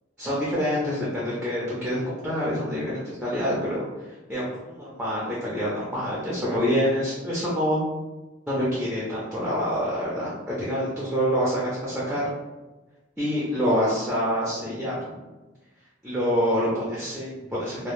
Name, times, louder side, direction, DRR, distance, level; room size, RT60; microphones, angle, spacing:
voice 1, 0.2-3.8 4.3-7.8 8.5-10.3 10.6-12.2 13.2-15.2 16.0-17.9, equal, 5° right, -7 dB, 0.4 m, -26 dB
2.0 x 2.0 x 3.0 m, 1.1 s
head